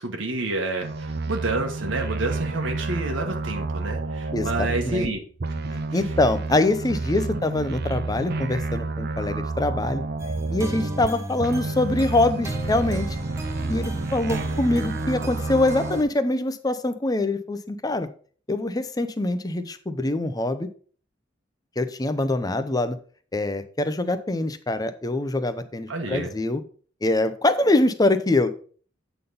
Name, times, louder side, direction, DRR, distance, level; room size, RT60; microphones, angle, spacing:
voice 1, 0.0-5.2 5.9-6.0 7.3-7.5 25.9-26.3, right 2 dB, 90° right, 2 dB, 1.2 m, -29 dB
sound 1, 0.8-5.1 5.4-11.1 11.4-16.0, right 3 dB, 55° right, 0.6 m, -30 dB
voice 2, 4.3-5.1 5.7-13.2 13.7-18.1 18.5-20.7 21.8-23.0 23.3-26.6 27.0-28.5, left 2 dB, 20° left, 11 dB, 0.7 m, -24 dB
Piano Intro & Buildup (Remix), 10.2-16.0, right 1 dB, 15° right, 0.9 m, -34 dB
8.3 x 4.0 x 5.4 m, 0.44 s
head